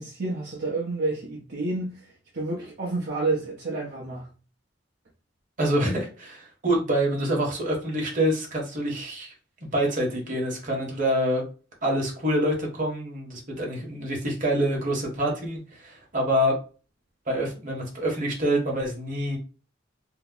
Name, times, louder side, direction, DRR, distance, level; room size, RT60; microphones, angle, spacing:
voice 1, 0.0-4.3, right 3 dB, 60° right, 0.7 m, -30 dB
voice 2, 5.6-9.3 9.6-11.4 11.8-16.5 17.3-19.4, right 1 dB, 45° right, 1.1 m, -26 dB
2.7 x 2.0 x 3.6 m
head